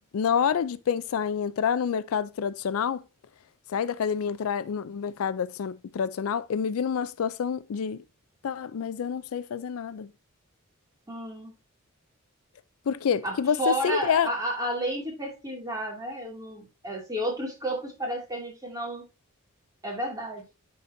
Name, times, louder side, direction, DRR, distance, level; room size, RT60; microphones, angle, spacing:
voice 1, 0.1-3.0 3.7-8.0 8.4-10.1 12.9-14.3, left 7 dB, 85° left, 0.4 m, -28 dB
voice 2, 11.1-11.5 13.2-19.0 19.8-20.4, equal, 15° right, 2.3 m, -31 dB
9.1 x 4.2 x 2.6 m
head